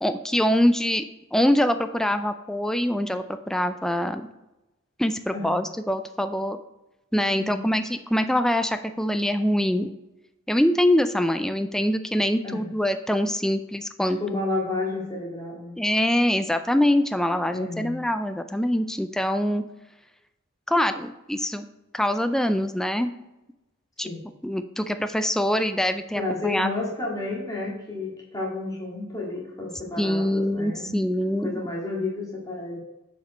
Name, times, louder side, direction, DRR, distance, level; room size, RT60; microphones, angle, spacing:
voice 1, 0.0-1.0 1.3-4.3 5.0-6.6 7.1-9.9 10.5-14.2 15.8-19.6 20.7-21.7 21.9-23.1 24.0-24.1 24.4-26.7 30.0-31.6, left 1 dB, 5° left, 8 dB, 0.3 m, -24 dB
voice 2, 5.3-5.7 7.3-7.7 12.4-12.7 14.2-15.8 17.5-18.0 24.0-24.2 26.1-31.0 31.4-32.8, left 2 dB, 20° left, -3 dB, 2.0 m, -31 dB
7.3 x 5.2 x 5.1 m, 0.96 s
head